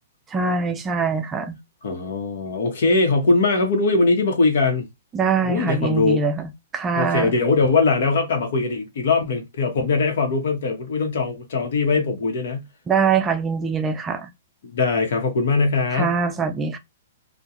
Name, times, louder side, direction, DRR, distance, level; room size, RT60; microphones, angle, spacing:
voice 1, 0.3-1.6 5.1-7.3 12.9-14.3 15.9-16.8, right 5 dB, 20° right, 0.3 m, -23 dB
voice 2, 1.8-4.9 5.4-6.2 6.9-12.6 14.6-16.1, left 3 dB, 65° left, 0.9 m, -21 dB
2.3 x 2.1 x 2.8 m
hypercardioid pair, 130°, 0 cm